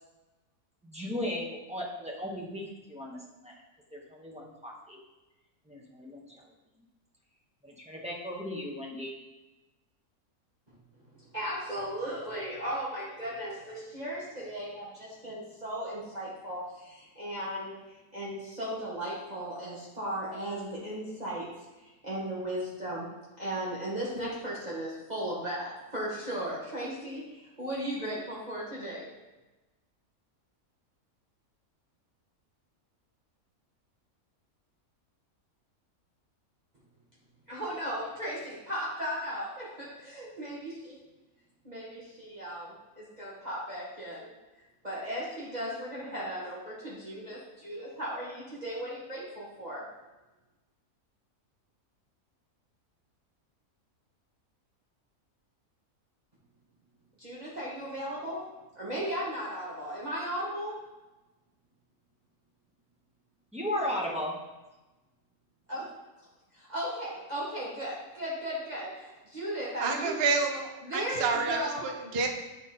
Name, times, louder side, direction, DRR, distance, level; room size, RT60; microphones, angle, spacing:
voice 1, 0.8-2.6 2.9-3.5 3.9-5.0 5.7-6.3 7.6-9.1 63.5-64.3, left 1 dB, 5° right, -3 dB, 0.9 m, -36 dB
voice 2, 11.1-21.5 21.8-23.1 23.4-29.1 37.5-41.0 41.6-44.3 44.8-49.8 57.2-58.5 58.7-60.8 65.7-65.9 66.5-70.2 70.8-71.8, equal, 30° right, -8 dB, 1.5 m, -36 dB
voice 3, 69.8-72.3, right 4 dB, 50° right, 3 dB, 0.9 m, -29 dB
8.0 x 4.1 x 4.1 m, 1.1 s
omnidirectional pair, 1.6 m